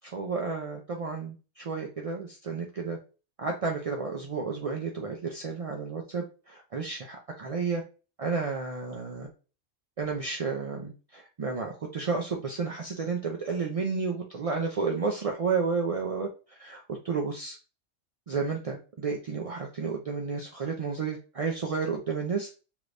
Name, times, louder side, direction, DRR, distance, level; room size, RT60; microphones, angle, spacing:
voice 1, 0.1-3.0 3.4-7.8 8.2-9.3 10.0-16.3 16.6-17.6 18.3-22.5, right 4 dB, 60° right, 0 dB, 0.3 m, -31 dB
2.9 x 2.5 x 3.2 m, 0.34 s
omnidirectional pair, 1.2 m